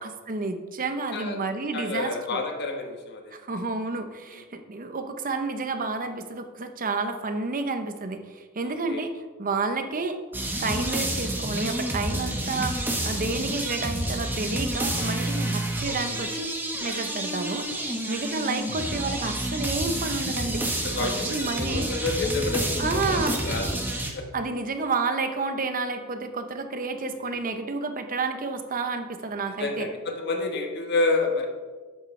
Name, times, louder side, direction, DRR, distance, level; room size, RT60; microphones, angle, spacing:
voice 1, 0.0-2.4 3.3-9.1 9.4-10.2 10.6-16.5 16.8-20.6 21.0-21.9 22.8-23.4 24.3-29.9, right 3 dB, 40° right, 8 dB, 0.7 m, -30 dB
voice 2, 1.7-3.3 4.3-4.4 8.6-9.0 12.4-12.5 17.4-17.5 20.8-23.8 24.1-24.2 27.3-27.4 29.4-31.5, left 3 dB, 50° left, 3 dB, 1.3 m, -29 dB
sound 1, 10.3-24.1, right 1 dB, 10° right, 1.1 m, -29 dB
10.5 x 8.0 x 3.2 m, 1.4 s
head